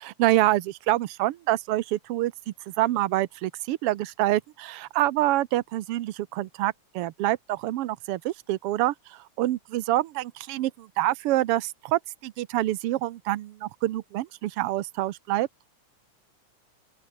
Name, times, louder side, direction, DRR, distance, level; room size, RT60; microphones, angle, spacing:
voice 1, 0.0-2.3 2.7-15.5, right 15 dB, 75° right, 1.4 m, -26 dB
open air
omnidirectional pair, 3.6 m